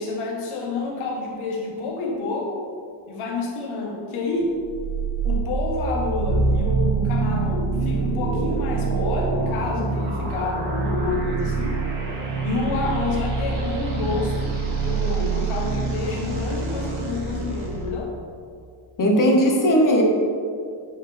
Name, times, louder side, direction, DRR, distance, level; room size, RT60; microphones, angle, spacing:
voice 1, 0.0-2.7 3.1-4.5 5.2-11.8 12.4-18.1, left 3 dB, 90° left, -1 dB, 1.4 m, -28 dB
sound 1, 4.6-17.9, right 4 dB, 75° right, 1.7 m, -25 dB
voice 2, 19.0-20.0, equal, 40° left, 0 dB, 1.1 m, -17 dB
9.5 x 4.2 x 3.4 m, 2.3 s
cardioid pair, 150°, 48 cm